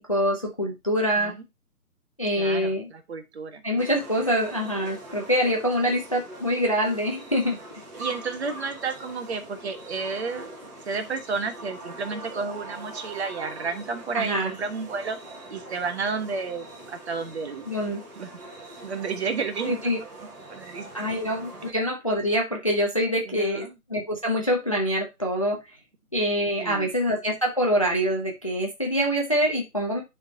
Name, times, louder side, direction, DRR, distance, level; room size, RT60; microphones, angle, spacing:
voice 1, 0.1-1.3 2.2-2.9 3.6-7.6 14.1-14.5 17.7-18.0 19.7-20.0 20.9-25.6 26.1-30.0, equal, 25° left, 1 dB, 0.5 m, -25 dB
voice 2, 2.4-3.6 5.9-6.0 8.0-15.2 15.5-17.7 18.1-18.3 18.8-19.8 20.5-21.1 23.3-23.7 26.6-26.9, right 4 dB, 45° right, 7 dB, 1.2 m, -32 dB
sound 1, 3.8-21.7, right 2 dB, 25° right, 2.2 m, -42 dB
10.0 x 3.6 x 2.7 m, 0.23 s
hypercardioid pair, 155°, 45 cm